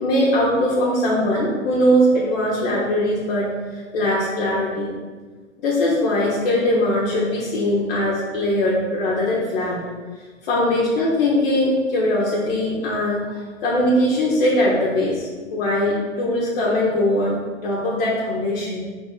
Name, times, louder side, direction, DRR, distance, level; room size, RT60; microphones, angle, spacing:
voice 1, 0.0-4.9 5.6-9.8 10.4-18.8, left 1 dB, 45° left, -5 dB, 0.9 m, -21 dB
4.2 x 2.8 x 3.7 m, 1.4 s
figure-of-eight pair, 115°, 39 cm